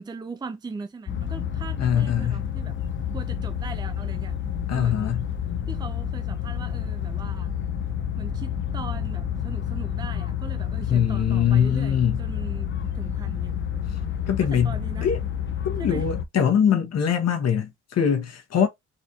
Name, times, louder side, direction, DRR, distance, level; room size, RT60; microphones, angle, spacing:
voice 1, 0.0-2.8 3.1-4.3 4.7-5.2 5.7-7.5 8.2-13.5 14.5-15.1 15.8-16.1, right 4 dB, 15° right, 0.5 m, -39 dB
sound 1, 1.1-16.3, left 9 dB, 40° left, 0.6 m, -29 dB
voice 2, 1.8-2.4 4.7-5.2 10.9-12.2 14.3-15.2 15.6-18.7, left 8 dB, 55° left, 1.2 m, -22 dB
4.0 x 2.6 x 2.9 m
cardioid pair, 90°, 30 cm